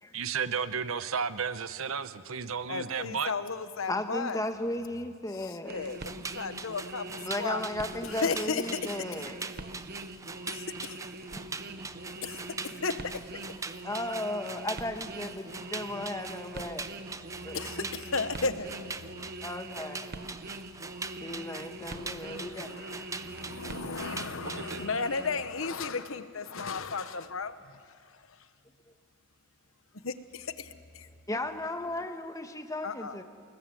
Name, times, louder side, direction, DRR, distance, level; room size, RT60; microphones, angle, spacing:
voice 1, 0.1-3.3 24.3-24.8, right 6 dB, 70° right, 13 dB, 0.9 m, -33 dB
voice 2, 2.7-4.4 5.6-7.1 7.4-7.6 8.2-8.6 10.5-11.0 12.2-12.9 17.5-19.3 22.0-27.5 30.0-30.7 30.9-31.1 32.8-33.2, left 4 dB, 70° left, 11 dB, 1.1 m, -34 dB
voice 3, 3.9-5.9 7.2-9.6 13.8-16.9 17.4-17.9 19.4-20.3 21.2-22.8 31.3-33.2, left 1 dB, 15° left, 6 dB, 1.2 m, -35 dB
sound 1, 5.7-25.4, right 2 dB, 50° right, 1.1 m, -43 dB
sound 2, 5.9-24.9, right 4 dB, 15° right, 0.6 m, -43 dB
28.5 x 19.5 x 7.6 m, 2.2 s
head